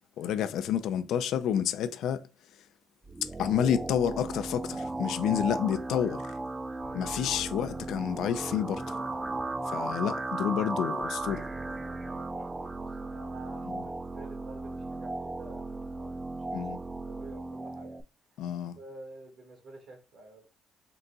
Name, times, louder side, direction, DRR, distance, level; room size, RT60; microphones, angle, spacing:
voice 1, 0.2-2.2 3.2-6.4 6.9-9.0 9.7-11.5 13.6-13.8 16.5-16.8 18.4-18.8, left 9 dB, 80° left, 0.4 m, -29 dB
sound 1, 3.0-18.0, right 2 dB, 15° right, 0.3 m, -36 dB
voice 2, 9.4-9.9 11.9-16.1 16.8-18.0 18.8-20.5, right 2 dB, 70° right, 1.5 m, -50 dB
3.8 x 2.2 x 3.8 m
cardioid pair, 115°, 0 cm